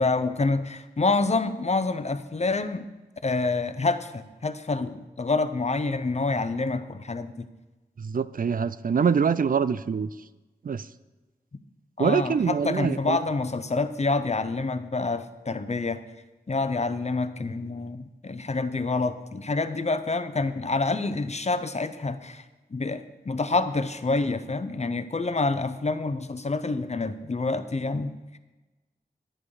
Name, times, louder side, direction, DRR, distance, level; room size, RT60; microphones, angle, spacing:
voice 1, 0.0-2.9 3.2-7.5 12.0-16.0 16.5-22.4 22.7-28.4, left 3 dB, 40° left, 11 dB, 0.7 m, -27 dB
voice 2, 8.0-10.1 10.6-10.9 12.0-13.2, right 6 dB, 55° right, 15 dB, 0.4 m, -24 dB
10.0 x 8.8 x 4.9 m, 1.2 s
wide cardioid pair, 55°, 18 cm